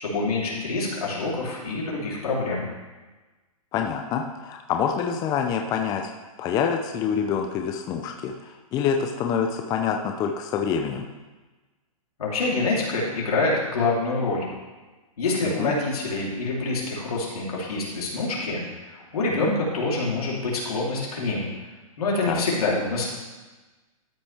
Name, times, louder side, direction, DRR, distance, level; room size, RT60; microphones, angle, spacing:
voice 1, 0.0-2.6 12.2-14.4 15.2-18.6 18.9-21.5 22.0-23.1, left 3 dB, 80° left, -4 dB, 3.3 m, -26 dB
voice 2, 3.7-6.1 6.4-11.1 15.6-15.7 19.4-19.5 22.3-22.4, left 7 dB, 20° left, 3 dB, 0.5 m, -26 dB
13.0 x 5.9 x 3.4 m, 1.2 s
hypercardioid pair, 140°, 19 cm